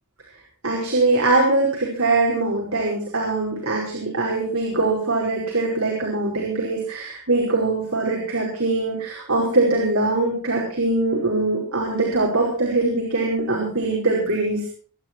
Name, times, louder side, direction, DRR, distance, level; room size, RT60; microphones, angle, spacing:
voice 1, 0.6-14.7, right 2 dB, 65° right, -2 dB, 5.2 m, -22 dB
23.5 x 11.0 x 4.6 m, 0.43 s
head